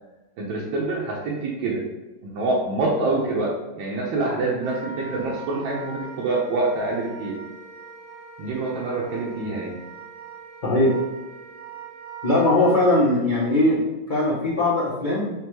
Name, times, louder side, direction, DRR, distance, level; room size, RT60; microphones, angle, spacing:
voice 1, 0.4-1.8 2.2-7.4 8.4-9.8, right 2 dB, 90° right, -4 dB, 1.5 m, -26 dB
Wind instrument woodwind instrument, 4.6-13.0, right 5 dB, 65° right, 1.5 m, -41 dB
voice 2, 10.6-11.0 12.2-15.3, left 1 dB, 65° left, -7 dB, 0.4 m, -20 dB
6.6 x 2.2 x 3.0 m, 1.1 s
omnidirectional pair, 2.1 m